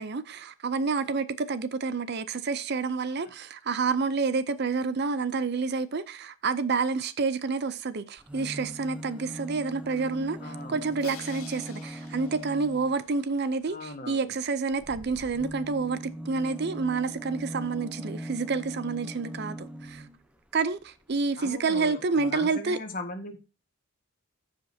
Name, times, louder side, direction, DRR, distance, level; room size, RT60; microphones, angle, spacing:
voice 1, 0.0-20.0 20.5-22.8, right 4 dB, 50° right, 0.5 m, -29 dB
sound 1, 8.2-13.0 14.7-20.2 21.1-21.2 21.4-21.5, equal, 5° right, 0.6 m, -40 dB
voice 2, 10.4-11.0 13.7-14.3 21.4-23.4, left 2 dB, 40° left, 1.4 m, -39 dB
Crash cymbal, 11.0-13.2, left 7 dB, 75° left, 0.8 m, -48 dB
15.0 x 5.1 x 2.7 m
head